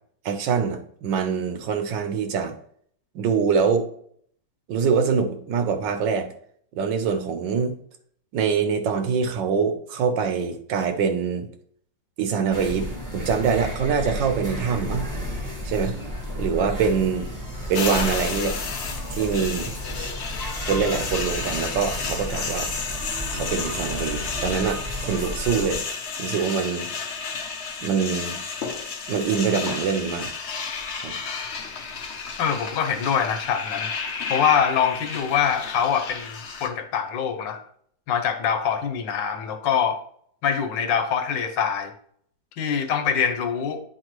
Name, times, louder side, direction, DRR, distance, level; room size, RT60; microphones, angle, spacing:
voice 1, 0.2-2.5 3.1-3.9 4.7-6.3 6.7-7.8 8.3-11.5 12.2-15.0 15.6-15.9 16.3-17.3 17.7-18.6 19.1-20.1 20.6-22.7 23.3-25.8 26.2-26.9 27.8-28.4 29.1-30.3 30.9-31.1, right 6 dB, 80° right, 7 dB, 1.5 m, -24 dB
sound 1, 12.5-25.8, equal, 10° right, 1.3 m, -32 dB
sound 2, 17.7-36.7, left 5 dB, 55° left, 0.8 m, -32 dB
voice 2, 32.4-33.9 34.3-37.6 38.1-40.0 40.4-41.9 42.6-43.8, left 7 dB, 85° left, 8 dB, 1.5 m, -24 dB
9.1 x 4.4 x 3.0 m, 0.62 s
omnidirectional pair, 1.9 m